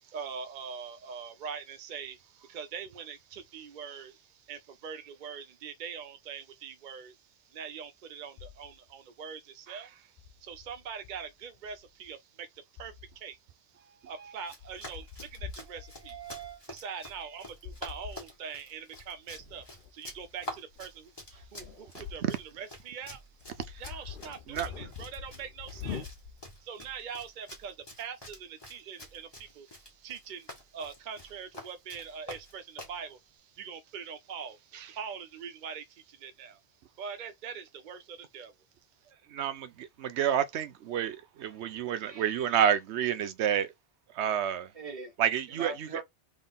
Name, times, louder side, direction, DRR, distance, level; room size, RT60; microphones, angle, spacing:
voice 1, 0.1-2.2 2.5-4.1 4.5-7.1 7.5-9.9 10.4-12.5 12.8-12.9 13.2-13.4 14.1-16.2 16.7-19.6 19.9-21.1 21.5-21.6 22.1-22.2 22.6-23.2 23.8-26.0 26.6-29.7 30.0-30.5 30.7-33.2 33.6-35.8 36.2-36.6 37.0-38.5, right 6 dB, 55° right, 0.6 m, -42 dB
sound 1, 8.4-8.9 10.2-12.1 12.8-13.3 14.1-14.2 14.6-16.6 17.6-18.3 19.0-22.4 22.8-22.9 23.3-26.6, left 7 dB, 55° left, 0.8 m, -45 dB
voice 2, 13.7-14.4 15.7-16.6 21.3-21.5 42.1-42.7 44.7-45.1 45.5-46.0, right 5 dB, 35° right, 1.4 m, -43 dB
Run, 14.4-33.0, left 1 dB, 20° left, 1.8 m, -48 dB
voice 3, 39.3-43.7 44.1-44.7 45.2-46.0, right 9 dB, 85° right, 0.9 m, -29 dB
3.7 x 3.5 x 3.8 m
omnidirectional pair, 1.1 m